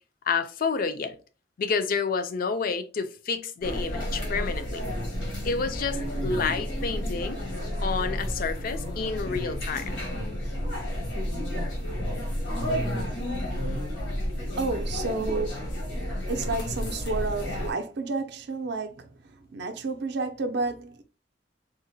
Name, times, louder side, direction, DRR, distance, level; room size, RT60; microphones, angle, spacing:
voice 1, 0.3-1.2 1.6-4.8 5.4-7.4 7.8-10.0, left 5 dB, 50° left, 0.4 m, -29 dB
sound 1, 3.6-17.7, equal, 90° left, 1.4 m, -31 dB
voice 2, 14.6-15.7 16.3-21.0, right 3 dB, 65° right, 0.5 m, -31 dB
3.8 x 2.1 x 2.6 m
head